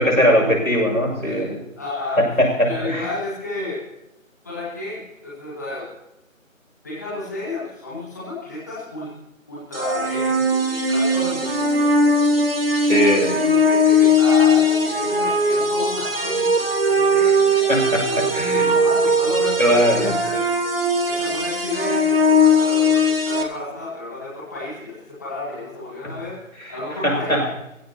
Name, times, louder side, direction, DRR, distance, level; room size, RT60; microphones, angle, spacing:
voice 1, 0.0-1.6 2.2-3.1 12.8-13.4 17.2-17.3 17.7-18.7 19.6-20.2 27.0-27.5, equal, 90° left, 0 dB, 6.8 m, -20 dB
voice 2, 1.2-2.3 2.7-3.9 4.4-5.9 6.8-9.1 9.5-11.9 12.7-20.5 21.1-27.5, left 2 dB, 15° left, -7 dB, 1.8 m, -32 dB
sound 1, 9.7-23.4, left 1 dB, 45° right, 1.6 m, -19 dB
20.0 x 16.0 x 2.9 m, 0.87 s
figure-of-eight pair, 165°, 41 cm